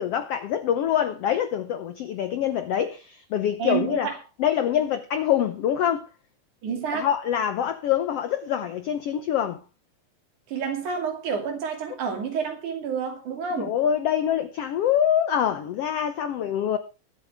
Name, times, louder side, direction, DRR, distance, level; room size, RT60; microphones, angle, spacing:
voice 1, 0.0-4.1 4.4-6.1 6.9-9.6 13.6-16.8, left 9 dB, 75° left, 1.4 m, -25 dB
voice 2, 3.6-4.2 6.6-7.1 10.5-13.8, right 6 dB, 70° right, 4.0 m, -29 dB
22.0 x 8.6 x 3.5 m
omnidirectional pair, 3.7 m